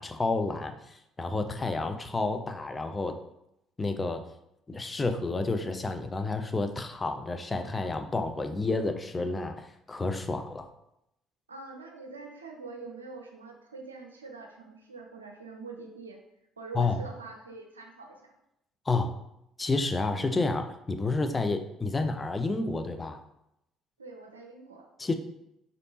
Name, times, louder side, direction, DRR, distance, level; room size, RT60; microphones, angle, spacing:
voice 1, 0.0-3.2 3.8-4.2 4.7-10.7 16.7-17.0 18.9-19.1 19.6-23.2 25.0-25.1, left 3 dB, 25° left, 7 dB, 0.4 m, -30 dB
voice 2, 11.5-16.2 16.6-18.4 24.0-24.9, right 4 dB, 90° right, 2 dB, 0.4 m, -44 dB
3.9 x 3.4 x 2.8 m, 0.82 s
hypercardioid pair, 55°, 0 cm